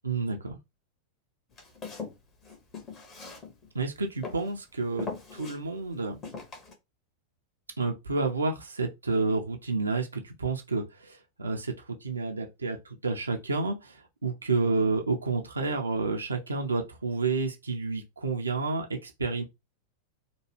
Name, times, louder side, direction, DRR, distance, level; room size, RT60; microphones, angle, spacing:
voice 1, 0.0-0.6 3.7-6.2 7.8-19.4, right 3 dB, 75° right, 0.5 m, -30 dB
Walk footsteps, 1.5-3.8 4.2-4.6 5.0-5.6 6.2-6.7, left 4 dB, 30° left, 1.0 m, -40 dB
3.0 x 2.2 x 3.1 m
figure-of-eight pair, 90°, 0 cm